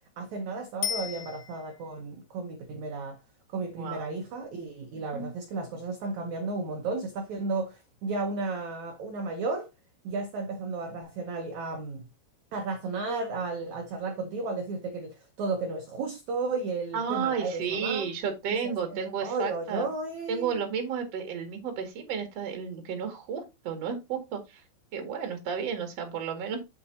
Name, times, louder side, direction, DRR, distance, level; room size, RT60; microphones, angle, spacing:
voice 1, 0.2-3.2 3.5-9.7 10.0-12.1 12.5-18.1 18.5-20.6, right 3 dB, 90° right, 1.6 m, -33 dB
Bicycle bell, 0.8-1.9 11.0-11.1, left 9 dB, 85° left, 1.7 m, -34 dB
voice 2, 3.8-4.2 5.1-5.3 16.9-19.9 20.3-24.6 24.9-26.6, right 6 dB, 45° right, 2.7 m, -32 dB
8.1 x 5.8 x 4.0 m
omnidirectional pair, 4.9 m